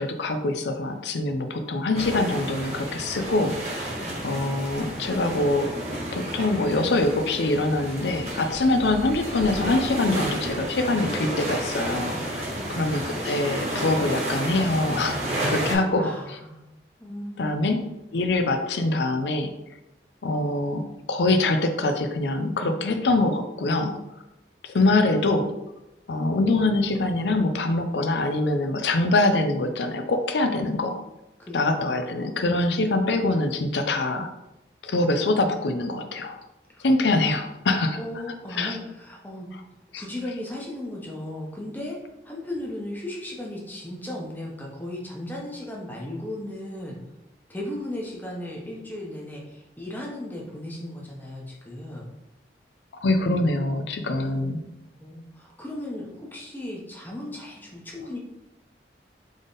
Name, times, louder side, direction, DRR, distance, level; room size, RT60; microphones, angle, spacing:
voice 1, 0.0-3.5 4.2-5.7 6.1-12.4 12.7-15.2 15.5-16.4 17.4-17.8 18.1-19.5 20.2-20.8 21.1-23.9 24.6-25.5 26.1-31.0 31.5-34.3 34.8-36.4 36.8-38.0 38.6-38.8 39.9-40.0 53.0-54.6, left 2 dB, 85° left, 7 dB, 0.5 m, -24 dB
sound 1, 1.9-15.7, right 1 dB, 40° right, 1.1 m, -31 dB
voice 2, 12.5-12.9 15.9-16.6 17.0-17.6 30.5-30.8 31.4-31.6 36.7-36.8 38.0-39.5 39.9-42.0 42.2-47.0 47.5-52.1 54.1-54.6 55.0-58.2, left 1 dB, 10° left, -2 dB, 0.8 m, -36 dB
3.6 x 3.5 x 3.9 m, 0.95 s
head